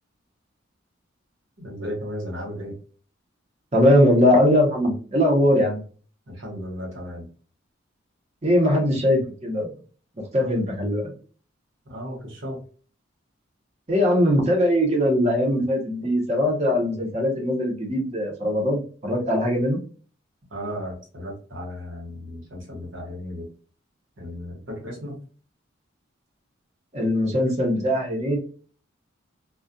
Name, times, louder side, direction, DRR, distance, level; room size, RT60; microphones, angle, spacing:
voice 1, 1.6-2.8 6.3-7.3 10.4-10.5 11.8-12.6 20.5-23.5 24.2-25.2, equal, 70° right, -1 dB, 1.1 m, -35 dB
voice 2, 3.7-5.8 8.4-9.7 10.2-11.1 13.9-19.8 26.9-28.4, left 1 dB, 35° right, 0 dB, 0.8 m, -21 dB
2.3 x 2.3 x 2.5 m, 0.40 s
head